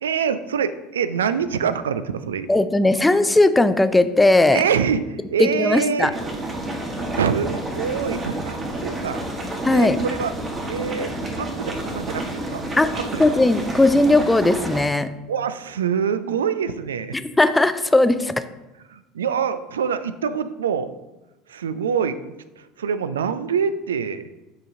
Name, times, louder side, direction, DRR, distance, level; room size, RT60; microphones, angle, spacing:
voice 1, 0.0-2.5 4.5-6.2 7.1-9.2 9.7-10.3 10.7-12.2 12.5-12.7 12.9-13.2 15.3-17.2 18.9-20.9 21.5-24.3, right 7 dB, 70° right, 13 dB, 0.3 m, -25 dB
voice 2, 2.5-4.6 5.4-6.1 9.6-10.0 12.8-12.9 13.2-15.1 17.1-18.3, left 2 dB, 10° left, 12 dB, 0.4 m, -17 dB
sound 1, 6.1-14.8, right 1 dB, 20° right, 1.4 m, -29 dB
8.8 x 5.0 x 2.7 m, 1.1 s
figure-of-eight pair, 70°, 0 cm